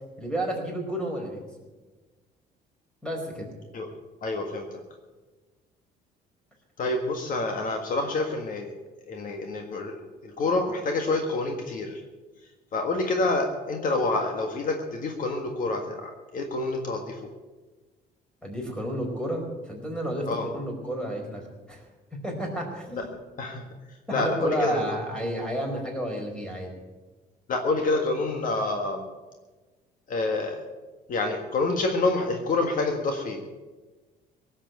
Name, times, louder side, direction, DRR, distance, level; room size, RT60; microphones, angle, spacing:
voice 1, 0.2-1.4 3.0-3.5 18.4-20.3 20.5-21.8 22.2-23.0 24.1-26.7, right 1 dB, 5° left, 0 dB, 4.7 m, -31 dB
voice 2, 4.2-4.6 6.8-8.7 9.1-12.0 12.7-17.2 20.3-20.5 23.4-23.7 24.1-24.8 27.5-29.0 30.1-30.6 31.1-33.4, left 2 dB, 55° left, 3 dB, 1.7 m, -27 dB
17.5 x 7.5 x 9.1 m, 1.2 s
cardioid pair, 110°, 17 cm